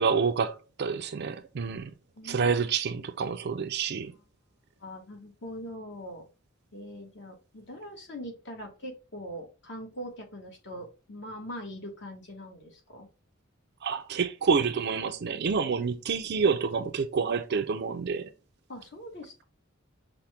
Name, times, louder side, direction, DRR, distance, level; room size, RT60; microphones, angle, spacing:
voice 1, 0.0-1.9 2.2-4.1 13.8-18.3, right 5 dB, 55° right, 0.5 m, -28 dB
voice 2, 2.2-2.5 3.0-3.1 4.0-4.1 4.8-6.3 6.7-13.1 18.7-19.4, equal, 60° left, 1.3 m, -42 dB
5.8 x 2.1 x 3.3 m
head